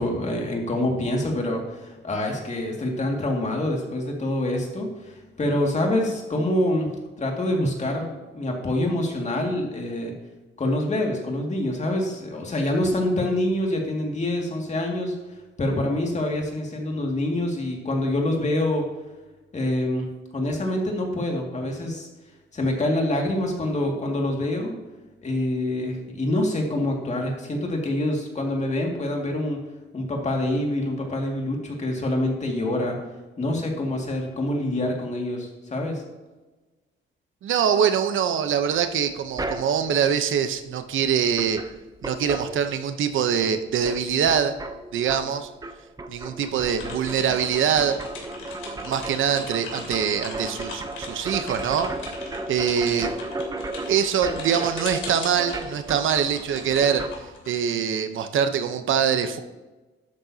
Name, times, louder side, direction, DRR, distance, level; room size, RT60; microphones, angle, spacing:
voice 1, 0.0-10.1 10.6-15.2 15.6-18.8 19.5-22.1 22.5-24.7 25.2-29.6 29.9-33.0 33.4-36.0, left 1 dB, 35° left, 0 dB, 2.2 m, -26 dB
voice 2, 37.4-41.6 42.0-44.5 44.9-45.5 46.1-48.0 48.8-51.9 52.5-53.1 53.9-57.0 57.5-59.4, right 8 dB, 75° right, 9 dB, 0.8 m, -23 dB
sound 1, 38.7-40.0 41.0-41.1 41.3-43.1 43.4-57.2, right 2 dB, 20° right, 0.7 m, -35 dB
sound 2, 46.6-58.2, left 3 dB, 75° left, 2.9 m, -40 dB
12.0 x 8.8 x 2.8 m, 1.2 s
cardioid pair, 115°, 20 cm